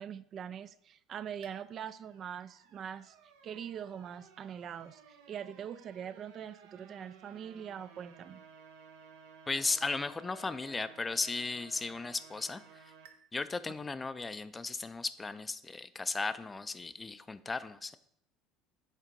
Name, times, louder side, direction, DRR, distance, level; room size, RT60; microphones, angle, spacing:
voice 1, 0.0-3.2 3.4-8.4, right 8 dB, 45° right, 14 dB, 0.3 m, -43 dB
sound 1, 1.4-13.1, right 6 dB, 80° right, 0.8 m, -57 dB
voice 2, 9.5-12.8 13.3-18.0, left 3 dB, 20° left, 13 dB, 0.4 m, -36 dB
7.4 x 3.7 x 5.2 m, 0.71 s
supercardioid pair, 85°, 0 cm